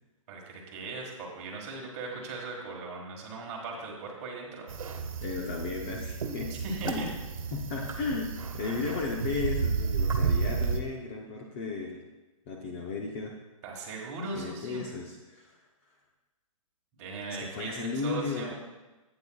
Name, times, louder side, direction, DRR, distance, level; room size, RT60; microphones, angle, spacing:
voice 1, 0.3-4.7 6.5-7.1 13.6-14.8 17.0-18.5, right 3 dB, 25° right, -1 dB, 1.6 m, -38 dB
sound 1, 4.7-10.8, right 5 dB, 75° right, 1.2 m, -32 dB
voice 2, 5.2-6.6 6.8-7.1 7.5-12.0 12.5-13.4 14.3-15.6 17.3-18.5, left 4 dB, 20° left, 0 dB, 0.6 m, -35 dB
12.0 x 8.8 x 2.3 m, 1.1 s
hypercardioid pair, 165°, 18 cm